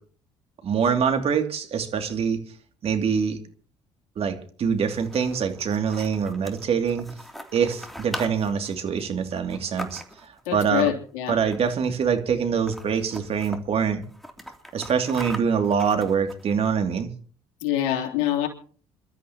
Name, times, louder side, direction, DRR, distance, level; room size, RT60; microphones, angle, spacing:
voice 1, 0.6-2.4 2.8-3.4 4.2-7.1 7.5-10.9 11.3-14.0 14.7-17.1, right 6 dB, 50° right, 5 dB, 2.7 m, -24 dB
sound 1, 4.8-10.4 11.4-11.9 12.2-12.3 12.5-13.6 14.0-16.7, equal, ahead, 3.0 m, -41 dB
voice 2, 10.4-11.4 17.6-18.5, left 12 dB, 70° left, 2 dB, 3.4 m, -25 dB
27.5 x 13.0 x 3.0 m, 0.44 s
hypercardioid pair, 60°, 13 cm